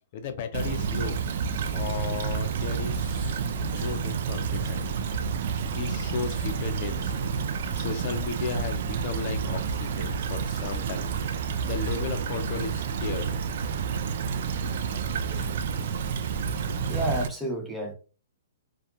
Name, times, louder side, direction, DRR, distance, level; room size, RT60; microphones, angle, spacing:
voice 1, 0.1-1.2 1.7-3.2 3.7-4.9 5.6-7.3 7.7-11.2 11.6-13.4, left 6 dB, 45° left, 0.5 m, -35 dB
Stream / Trickle dribble, 0.5-17.3, right 6 dB, 55° right, 0.4 m, -29 dB
sound 1, 3.0-4.0 4.6-5.8 6.2-6.6 7.6-8.0 8.4-8.7 10.6-11.1 11.8-12.1 12.3-12.4 12.9-13.0 14.6-15.6, right 2 dB, 30° right, 1.1 m, -50 dB
voice 2, 16.6-17.9, right 1 dB, ahead, 0.6 m, -31 dB
2.3 x 2.2 x 2.8 m
hypercardioid pair, 145°, 0 cm